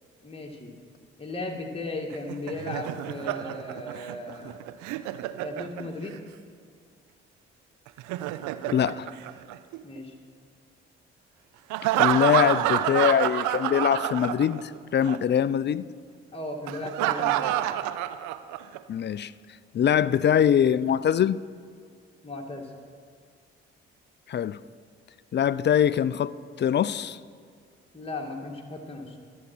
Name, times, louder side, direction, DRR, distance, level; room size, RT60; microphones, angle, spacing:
voice 1, 0.2-0.7 1.2-4.6 5.4-6.2 9.8-10.1 16.3-17.6 22.2-22.7 27.9-29.2, left 2 dB, 20° left, 2.2 m, -36 dB
Laughter, 2.1-6.2 7.9-10.0 11.7-14.8 15.0-15.2 16.7-18.8, right 13 dB, 70° right, 0.7 m, -28 dB
voice 2, 8.7-9.1 12.0-15.9 18.9-19.3 19.7-21.4 24.3-24.6 25.3-27.2, left 9 dB, 35° left, 0.5 m, -23 dB
25.0 x 8.5 x 4.5 m
figure-of-eight pair, 40°, 31 cm